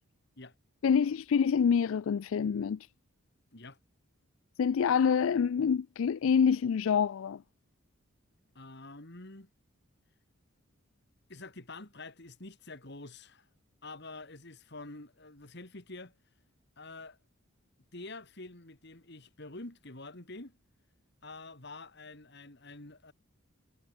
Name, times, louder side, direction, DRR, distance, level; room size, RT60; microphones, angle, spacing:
voice 1, 0.8-2.9 4.6-7.4, left 7 dB, 70° left, 0.4 m, -26 dB
voice 2, 8.5-9.5 11.3-13.5 13.8-16.1 16.8-17.2 17.9-20.6 21.2-23.1, left 2 dB, 50° left, 2.5 m, -47 dB
head